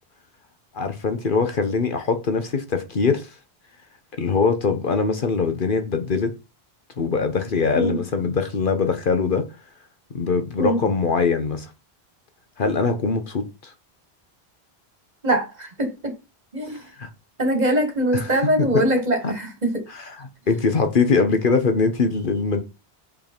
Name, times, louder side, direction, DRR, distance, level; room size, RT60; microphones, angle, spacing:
voice 1, 0.7-3.3 4.2-6.3 7.0-9.5 10.1-11.7 12.6-13.7 17.0-17.1 18.1-18.2 18.6-18.8 19.2-19.3 19.9-22.6, left 4 dB, 55° left, 1.1 m, -22 dB
voice 2, 15.2-16.1 16.5-16.8 17.4-19.8, right 1 dB, 40° right, 2.0 m, -22 dB
5.3 x 4.8 x 4.4 m
omnidirectional pair, 1.1 m